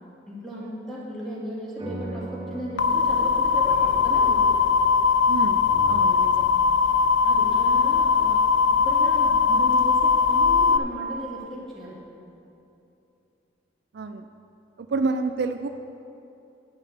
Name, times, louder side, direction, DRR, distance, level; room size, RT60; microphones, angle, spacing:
voice 1, 0.3-4.6 7.2-8.4 8.8-12.0, equal, ahead, -7 dB, 2.4 m, -36 dB
sound 1, 1.8-10.5, right 2 dB, 25° right, 1.1 m, -42 dB
sound 2, 2.8-10.8, left 5 dB, 75° left, 0.4 m, -20 dB
voice 2, 5.3-6.5 13.9-14.3 14.8-15.7, right 3 dB, 60° right, 7 dB, 0.4 m, -29 dB
10.5 x 5.5 x 7.3 m, 2.8 s
head